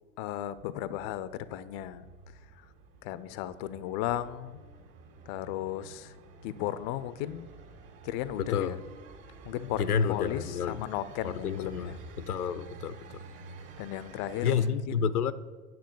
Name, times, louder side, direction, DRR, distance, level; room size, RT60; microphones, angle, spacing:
voice 1, 0.2-2.6 3.0-4.6 5.3-6.2 6.4-7.5 8.0-8.8 9.4-12.0 13.8-15.1, left 12 dB, 35° left, 16 dB, 0.5 m, -36 dB
sound 1, 0.6-14.7, right 4 dB, 45° right, 1.9 m, -50 dB
voice 2, 8.4-8.8 9.8-10.8 11.2-11.9 12.2-13.0 14.4-15.3, left 7 dB, 85° left, 16 dB, 0.6 m, -29 dB
9.3 x 7.3 x 7.0 m, 1.4 s
figure-of-eight pair, 90°, 44 cm